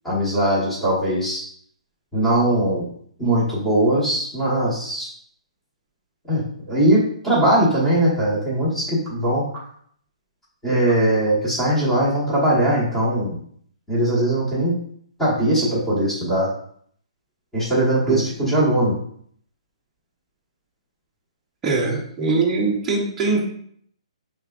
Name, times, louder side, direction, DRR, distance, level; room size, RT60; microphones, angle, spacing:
voice 1, 0.0-1.4 2.1-2.8 3.2-5.1 6.3-6.4 6.7-9.4 10.6-13.4 13.9-14.8 15.2-16.5 17.5-19.0, right 1 dB, 5° left, -9 dB, 1.1 m, -20 dB
voice 2, 21.6-23.4, right 3 dB, 10° right, -5 dB, 0.6 m, -22 dB
4.7 x 3.3 x 2.3 m, 0.63 s
hypercardioid pair, 160°, 4 cm